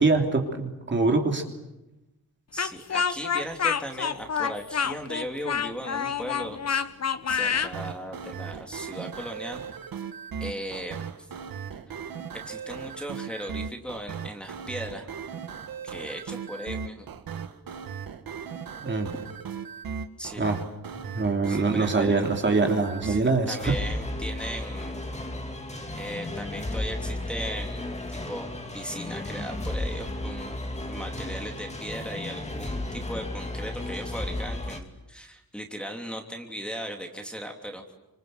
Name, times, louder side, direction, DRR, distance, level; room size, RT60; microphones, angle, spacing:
voice 1, 0.0-1.4 18.8-19.1 20.4-20.6 21.1-23.7, right 3 dB, 30° right, 3 dB, 3.1 m, -24 dB
voice 2, 2.5-6.8 7.3-9.6 10.4-11.3 12.3-15.1 15.8-17.1 20.2-20.4 21.5-22.1 23.0-25.0 26.0-30.6 30.9-37.8, equal, 5° left, 1 dB, 3.1 m, -37 dB
Speech, 2.6-7.7, left 7 dB, 45° left, 1.1 m, -27 dB
sound 1, 7.3-23.2, right 7 dB, 70° right, 1.9 m, -37 dB
sound 2, 23.5-34.8, left 1 dB, 20° left, 2.8 m, -34 dB
28.0 x 26.5 x 8.0 m, 0.96 s
wide cardioid pair, 135°, 36 cm